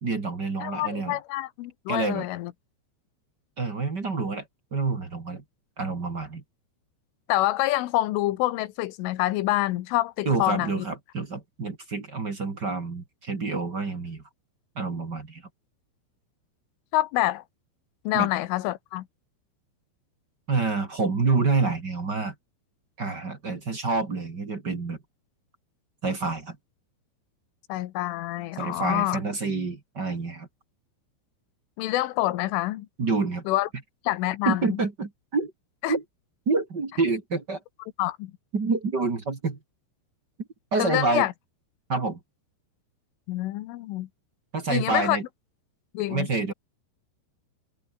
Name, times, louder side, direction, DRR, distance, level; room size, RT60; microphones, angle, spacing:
voice 1, 0.0-1.2 1.9-2.3 3.6-4.5 4.7-5.4 5.8-6.4 10.2-14.2 14.8-15.4 18.1-18.3 20.5-22.3 23.0-25.0 26.0-26.6 28.6-30.5 33.0-33.4 34.5-35.5 35.9-36.0 36.5-37.6 38.5-39.6 40.7-41.3 41.9-42.2 44.5-45.2 46.1-46.5, right 4 dB, 30° right, 2.1 m, -27 dB
voice 2, 0.6-2.5 7.3-10.9 16.9-17.4 18.1-19.1 27.7-29.2 31.8-32.9 33.5-33.7 34.1-34.8 35.8-36.0 38.0-38.3 40.8-41.3 43.3-44.1 44.7-45.2 46.0-46.3, left 16 dB, 90° left, 3.8 m, -26 dB
omnidirectional pair, 5.5 m